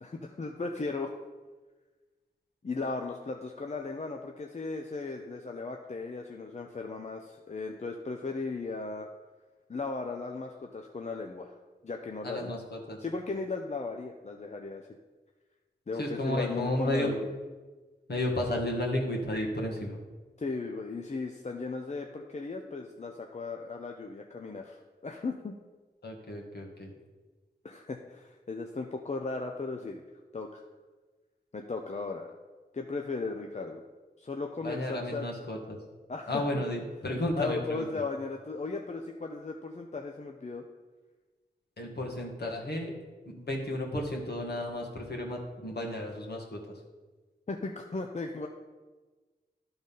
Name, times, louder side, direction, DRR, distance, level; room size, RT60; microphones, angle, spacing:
voice 1, 0.0-1.1 2.6-9.1 9.7-11.6 11.8-12.5 13.0-14.8 15.9-17.3 20.4-25.5 27.6-30.0 30.3-30.6 31.5-32.3 32.7-33.8 34.2-35.3 36.1-36.6 37.4-40.6 47.5-48.5, left 3 dB, 40° left, 3 dB, 0.7 m, -36 dB
voice 2, 12.2-13.0 16.0-17.1 18.1-20.0 26.0-26.9 34.6-35.8 36.3-38.0 41.8-42.9 43.4-46.6, left 1 dB, 65° left, -1 dB, 1.9 m, -33 dB
11.5 x 4.0 x 5.4 m, 1.3 s
cardioid pair, 45°, 18 cm